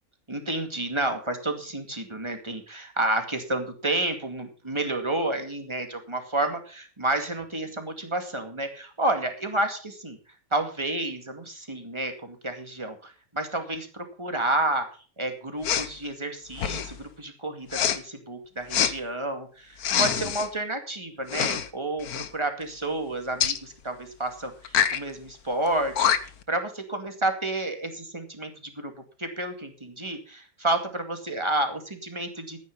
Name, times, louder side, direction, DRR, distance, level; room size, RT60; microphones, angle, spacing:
voice 1, 0.3-10.2 10.5-14.9 15.2-26.1 26.5-28.9 29.2-32.6, right 2 dB, 20° right, 5 dB, 2.3 m, -30 dB
Respiratory sounds, 15.6-15.9 16.5-17.0 17.7-18.0 18.7-18.9 19.8-20.5 21.3-21.7 22.0-22.3 23.4-23.6 24.7-25.0 25.7-25.8 26.0-26.4, left 8 dB, 90° left, 1.5 m, -25 dB
13.5 x 9.9 x 5.4 m, 0.38 s
omnidirectional pair, 1.5 m